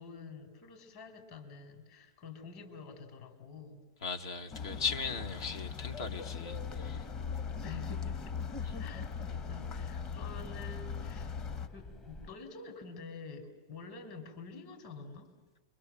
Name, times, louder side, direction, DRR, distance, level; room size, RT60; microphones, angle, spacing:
voice 1, 0.0-3.8 7.6-8.5 8.7-15.3, left 4 dB, 55° left, 6 dB, 5.1 m, -48 dB
voice 2, 4.0-7.0 8.6-8.8, left 5 dB, 75° left, 7 dB, 2.2 m, -38 dB
sound 1, 4.5-11.7, left 7 dB, 35° left, 1.3 m, -40 dB
sound 2, 6.5-12.3, equal, 20° left, 0.9 m, -48 dB
28.5 x 23.5 x 7.8 m, 1.2 s
hypercardioid pair, 125°, 2 cm